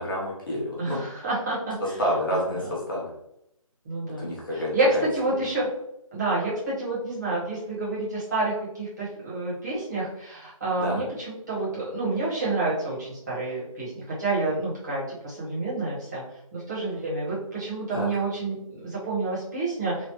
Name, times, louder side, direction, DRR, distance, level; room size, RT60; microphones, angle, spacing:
voice 1, 0.0-1.0 1.8-3.1 4.2-5.1 10.8-11.0 17.9-18.1, equal, 35° left, -5 dB, 0.8 m, -29 dB
voice 2, 0.8-2.0 2.3-2.6 3.8-5.7 6.1-16.2 16.5-20.1, right 2 dB, 30° right, -8 dB, 1.3 m, -29 dB
3.2 x 2.0 x 3.0 m, 0.80 s
figure-of-eight pair, 170°, 18 cm